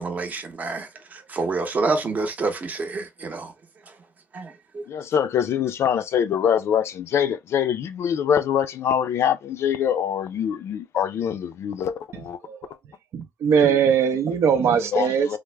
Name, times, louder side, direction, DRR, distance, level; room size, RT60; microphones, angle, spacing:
voice 1, 0.0-3.5 4.3-4.8, right 3 dB, 35° right, 0.7 m, -28 dB
voice 2, 4.9-12.4 13.6-13.8 14.9-15.4, left 8 dB, 70° left, 0.4 m, -24 dB
voice 3, 13.1-15.4, right 7 dB, 75° right, 0.5 m, -21 dB
3.3 x 2.0 x 3.3 m
wide cardioid pair, 160°, 5 cm